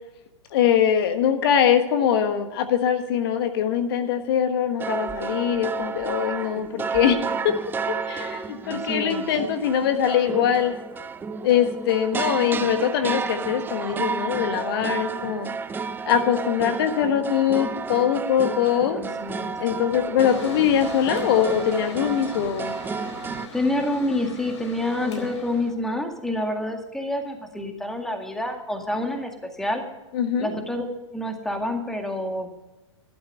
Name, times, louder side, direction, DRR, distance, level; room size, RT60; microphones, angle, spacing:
voice 1, 0.5-7.2 7.4-7.5 8.1-10.7 11.4-15.5 16.0-19.0 19.6-22.7 25.0-25.3 30.1-30.5, left 9 dB, 55° left, 8 dB, 1.3 m, -22 dB
sound 1, 4.8-23.5, right 5 dB, 15° right, 0.6 m, -31 dB
voice 2, 8.6-9.2 19.0-19.5 23.5-29.8 30.4-30.9 31.1-32.5, left 1 dB, 5° left, 4 dB, 2.1 m, -28 dB
Mechanical fan, 20.2-25.7, left 3 dB, 70° left, 4.0 m, -41 dB
13.0 x 12.0 x 5.4 m, 1.0 s
figure-of-eight pair, 105°, 15 cm